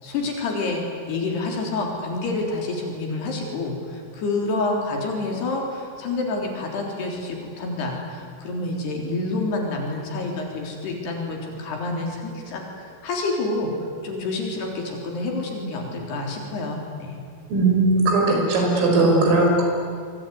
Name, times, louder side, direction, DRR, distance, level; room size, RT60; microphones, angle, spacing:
voice 1, 0.0-13.7 14.0-17.2 19.2-19.3, left 2 dB, 55° left, 1 dB, 5.3 m, -28 dB
voice 2, 17.5-19.6, right 2 dB, 75° right, 0 dB, 8.1 m, -18 dB
25.5 x 24.0 x 9.5 m, 2.2 s
omnidirectional pair, 6.0 m